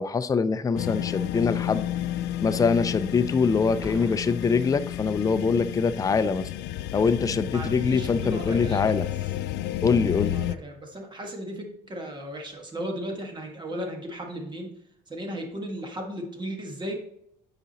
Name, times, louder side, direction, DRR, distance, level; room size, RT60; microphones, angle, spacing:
voice 1, 0.0-1.8 2.4-6.5 6.9-9.1 9.8-10.4, left 5 dB, 20° left, 11 dB, 0.4 m, -24 dB
sound 1, 0.8-10.6, left 12 dB, 80° left, 0.4 m, -31 dB
Boom, 3.8-5.6 6.4-6.7, right 1 dB, 10° right, 0.8 m, -45 dB
voice 2, 7.5-8.9 10.2-14.7 15.1-17.0, equal, 25° right, 2 dB, 1.7 m, -35 dB
9.6 x 4.9 x 2.9 m, 0.73 s
cardioid pair, 110°, 17 cm